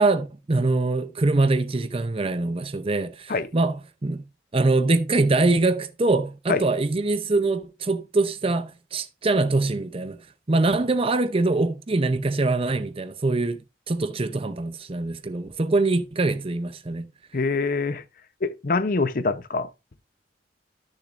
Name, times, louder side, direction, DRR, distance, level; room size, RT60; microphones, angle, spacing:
voice 1, 0.0-4.2 4.5-10.2 10.5-13.6 13.9-17.1, right 2 dB, 35° right, 0.6 m, -23 dB
voice 2, 17.3-18.0 18.4-19.7, left 3 dB, 55° left, 0.7 m, -24 dB
13.0 x 6.7 x 2.5 m
head